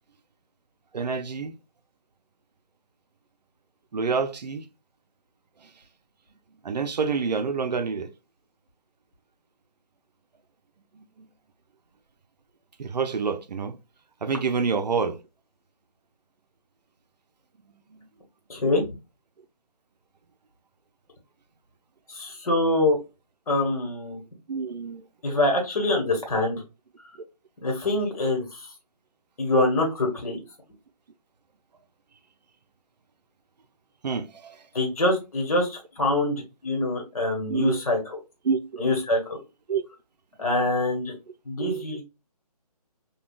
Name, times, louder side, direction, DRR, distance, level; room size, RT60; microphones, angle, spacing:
voice 1, 0.9-1.6 3.9-4.7 6.6-8.1 12.8-13.8 14.2-15.2 24.5-25.0 34.0-34.6 37.5-37.8 38.4-38.8 39.7-39.8 41.6-41.8, right 5 dB, 90° right, 0.5 m, -27 dB
voice 2, 18.5-18.8 22.1-23.0 23.5-24.2 25.2-26.6 27.6-28.4 29.4-30.4 34.7-38.0 38.8-39.4 40.4-41.1 41.5-42.0, left 2 dB, 60° left, 1.1 m, -24 dB
3.3 x 2.3 x 2.3 m
figure-of-eight pair, 160°, 21 cm